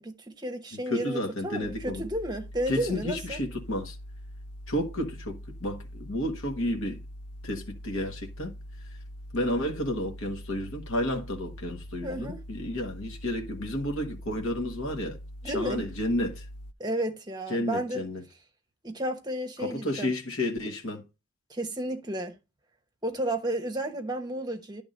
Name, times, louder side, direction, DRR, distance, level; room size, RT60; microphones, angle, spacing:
voice 1, 0.0-3.4 12.0-12.4 15.4-15.9 16.8-18.0 18.8-20.1 21.5-22.4 23.0-24.8, right 1 dB, 20° right, 1.0 m, -32 dB
voice 2, 0.9-2.0 2.7-4.0 4.7-7.0 7.4-8.5 9.3-15.2 15.4-16.4 17.5-18.2 19.6-21.0, left 1 dB, 60° left, 1.5 m, -31 dB
sound 1, 1.6-16.7, equal, 90° left, 0.5 m, -43 dB
10.5 x 3.6 x 5.3 m
head